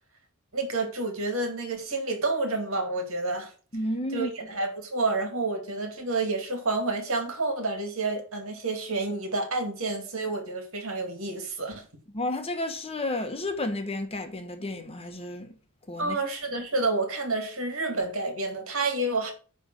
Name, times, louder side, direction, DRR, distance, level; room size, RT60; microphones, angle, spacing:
voice 1, 0.5-3.5 4.1-11.8 16.0-19.3, right 3 dB, 65° right, 2.3 m, -29 dB
voice 2, 3.7-4.5 12.1-15.6 15.9-16.2, left 1 dB, 25° left, 1.1 m, -32 dB
10.0 x 3.4 x 6.4 m
head